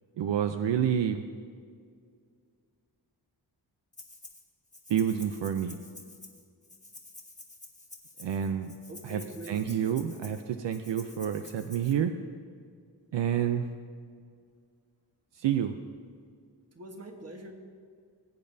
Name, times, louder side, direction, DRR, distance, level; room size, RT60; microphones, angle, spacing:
voice 1, 0.2-1.2 4.9-5.8 8.2-8.7 9.0-9.2 9.5-12.1 13.1-13.7 15.4-15.7, right 9 dB, 75° right, 7 dB, 0.6 m, -28 dB
Rattle (instrument), 3.9-4.4 4.7-11.9, left 2 dB, 15° left, 1.3 m, -50 dB
voice 2, 8.9-9.8 16.7-17.5, right 1 dB, 35° right, 3 dB, 1.3 m, -44 dB
20.0 x 8.8 x 2.7 m, 2.1 s
wide cardioid pair, 125°, 43 cm